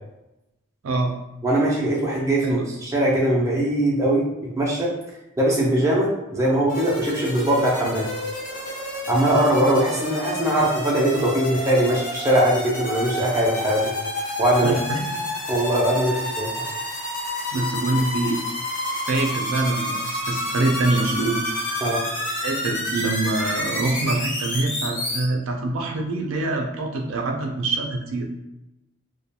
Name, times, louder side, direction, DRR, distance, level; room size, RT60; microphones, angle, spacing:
voice 1, 0.8-1.1 2.4-2.7 14.6-15.1 17.5-18.4 19.0-21.4 22.4-28.4, right 2 dB, 75° right, 1 dB, 0.4 m, -25 dB
voice 2, 1.4-4.3 4.6-4.9 5.4-8.1 9.1-13.8 14.4-14.7 15.5-16.5 21.8-22.0, right 1 dB, 15° right, -5 dB, 0.4 m, -21 dB
sound 1, 6.7-25.2, left 1 dB, 35° left, 0.6 m, -29 dB
2.3 x 2.2 x 2.7 m, 0.93 s
head